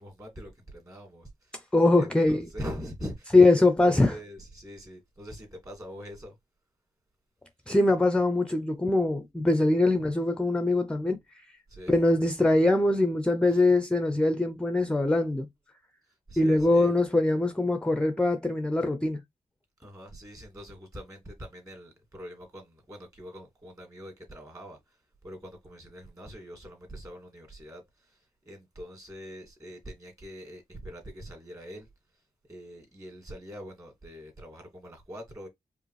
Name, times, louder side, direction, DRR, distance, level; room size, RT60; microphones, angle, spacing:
voice 1, 0.0-1.6 2.0-6.4 11.7-11.9 13.5-13.6 16.3-16.9 19.8-25.0 25.2-31.9 32.5-35.5, equal, 25° right, 2.2 m, -43 dB
voice 2, 1.7-2.5 3.3-4.2 7.7-11.2 11.9-15.5 16.4-19.2, left 2 dB, 5° left, 0.5 m, -22 dB
4.9 x 2.5 x 3.1 m
wide cardioid pair, 105°, 14 cm